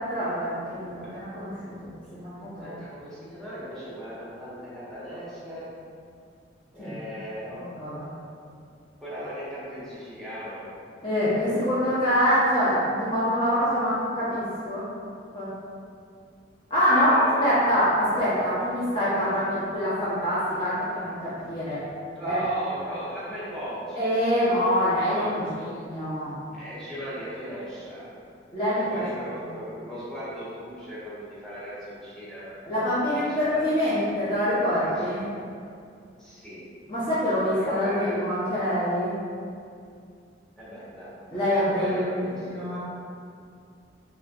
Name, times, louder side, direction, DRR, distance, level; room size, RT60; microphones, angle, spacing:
voice 1, 0.0-2.7 6.8-6.9 7.6-8.1 11.0-14.8 15.3-15.5 16.7-21.8 22.2-22.4 24.0-26.3 28.5-29.0 32.7-35.3 36.9-39.1 41.3-42.3 42.5-42.8, equal, 25° left, -12 dB, 0.8 m, -25 dB
voice 2, 2.6-5.7 6.7-7.7 9.0-10.7 11.5-11.7 16.8-17.8 22.1-24.2 24.7-25.5 26.5-28.1 28.7-32.6 33.1-33.7 34.9-35.1 36.2-36.6 37.1-38.2 40.6-42.8, equal, 5° left, -12 dB, 1.1 m, -38 dB
4.4 x 3.4 x 2.4 m, 2.4 s
head